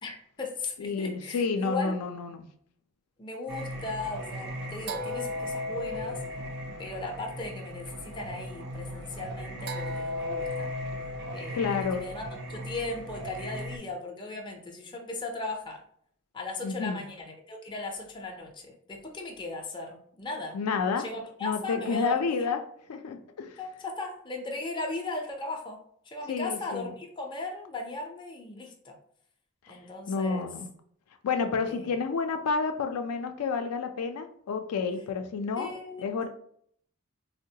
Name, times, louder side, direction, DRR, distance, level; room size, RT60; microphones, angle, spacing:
voice 1, 0.0-2.0 3.2-6.2 6.8-10.7 11.3-15.8 16.3-20.6 21.0-22.5 23.6-29.0 29.7-30.5 31.7-31.9 35.6-36.1, left 2 dB, 20° left, 1 dB, 0.4 m, -37 dB
voice 2, 0.8-2.5 11.5-12.1 16.6-17.0 20.5-21.1 21.4-22.6 22.9-23.5 26.3-26.9 29.7-29.8 30.1-30.7 31.2-35.7 36.0-36.3, left 5 dB, 90° left, 7 dB, 0.4 m, -30 dB
Singing, 3.5-13.8, left 1 dB, 50° right, 0.4 m, -36 dB
3.7 x 2.1 x 2.7 m, 0.65 s
head